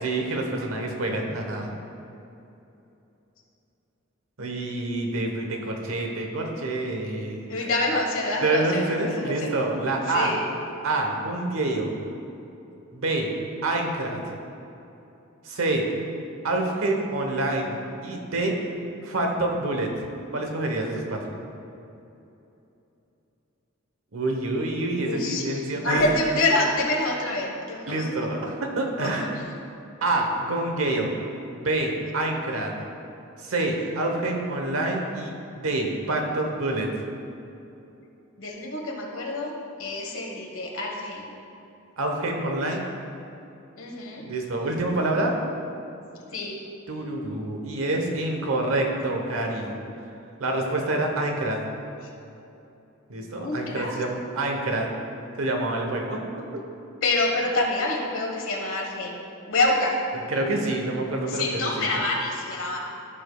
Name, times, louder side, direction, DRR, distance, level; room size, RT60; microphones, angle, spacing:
voice 1, 0.0-1.7 4.4-7.7 8.4-10.3 10.8-11.9 12.9-13.3 13.6-14.2 15.4-15.8 16.4-18.5 19.0-19.9 20.3-21.3 24.1-26.1 27.9-29.3 30.0-31.1 31.5-32.7 33.4-36.9 42.0-42.8 44.2-45.3 46.9-49.7 50.4-51.6 53.1-54.9 55.4-56.4 60.3-62.0, right 2 dB, 80° right, 2 dB, 1.0 m, -27 dB
voice 2, 7.5-9.5 10.1-10.4 25.0-25.4 25.8-28.1 29.0-29.1 38.4-39.5 39.8-41.3 43.8-44.2 46.3-46.6 53.4-53.9 57.0-59.2 59.5-60.0 61.3-62.8, left 2 dB, 70° left, 0 dB, 1.3 m, -26 dB
14.5 x 5.1 x 2.3 m, 2.8 s
head